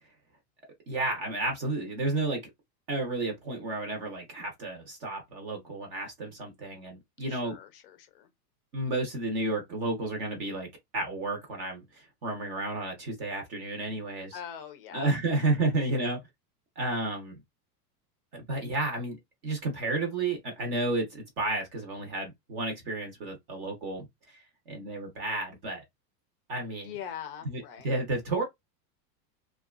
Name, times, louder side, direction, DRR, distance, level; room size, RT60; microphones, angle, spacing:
voice 1, 0.9-2.4 2.9-7.6 8.7-10.7 10.9-14.4 14.9-16.2 16.8-17.4 18.3-19.2 19.4-25.8 26.5-26.9 27.4-28.4, right 2 dB, 35° right, 0.7 m, -32 dB
voice 2, 7.3-8.3 14.3-15.1 26.8-27.9, left 9 dB, 35° left, 0.4 m, -42 dB
2.6 x 2.3 x 2.3 m
supercardioid pair, 170°, 50 cm